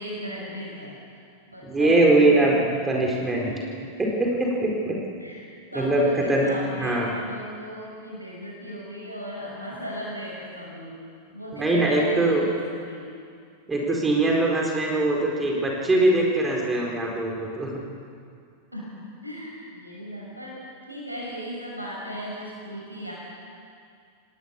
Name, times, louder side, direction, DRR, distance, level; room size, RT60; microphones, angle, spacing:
voice 1, 0.0-2.6 3.2-3.9 5.2-11.0 11.3-13.1 18.7-20.6 20.9-23.1, equal, 90° right, -4 dB, 6.4 m, -37 dB
voice 2, 1.6-2.6 2.8-3.5 4.0-5.0 5.7-6.5 6.8-7.1 11.5-12.4 13.7-17.8, right 2 dB, 15° right, -1 dB, 4.5 m, -22 dB
28.0 x 19.0 x 7.0 m, 2.3 s
figure-of-eight pair, 90°, 0 cm